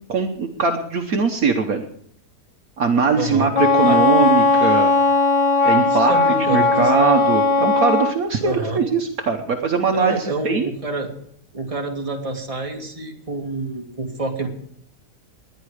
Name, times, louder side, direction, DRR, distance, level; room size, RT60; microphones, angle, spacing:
voice 1, 0.1-1.9 2.8-4.9 5.6-6.2 6.5-10.7, right 5 dB, 60° right, 4 dB, 1.5 m, -21 dB
voice 2, 3.2-3.5 3.8-4.0 5.9-6.9 8.4-8.8 9.9-11.1 11.5-14.5, right 2 dB, 20° right, 1 dB, 2.2 m, -27 dB
Wind instrument woodwind instrument, 3.5-8.1, left 3 dB, 80° left, 1.5 m, -17 dB
20.0 x 10.5 x 4.9 m, 0.68 s
omnidirectional pair, 1.8 m